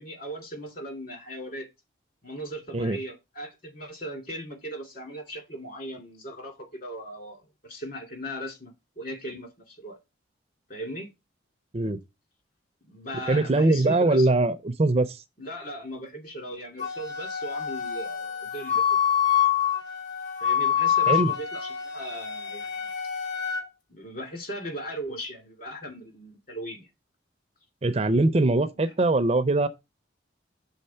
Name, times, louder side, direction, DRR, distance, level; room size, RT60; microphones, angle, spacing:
voice 1, 0.0-1.7 2.2-10.0 10.7-11.1 12.8-14.3 15.4-19.0 20.4-22.7 23.9-26.9, right 1 dB, 45° left, 2.4 m, -38 dB
voice 2, 13.3-15.2 21.1-21.3 27.8-29.7, right 2 dB, 30° right, 0.4 m, -22 dB
Wind instrument woodwind instrument, 16.8-23.6, left 9 dB, 65° left, 2.4 m, -26 dB
6.4 x 3.9 x 5.5 m
head